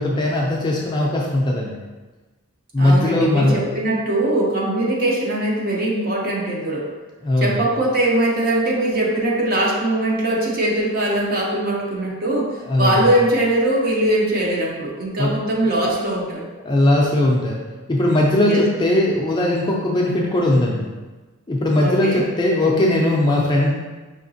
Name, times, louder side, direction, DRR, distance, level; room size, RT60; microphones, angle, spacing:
voice 1, 0.0-1.7 2.7-3.6 7.2-7.6 12.7-13.0 15.2-15.3 16.6-17.6 17.9-20.9 21.5-23.7, left 1 dB, 20° left, -3 dB, 0.4 m, -19 dB
voice 2, 2.8-6.9 7.4-16.5 18.5-18.6 21.8-22.3, right 1 dB, 40° right, -3 dB, 0.7 m, -21 dB
5.0 x 2.9 x 2.7 m, 1.2 s
head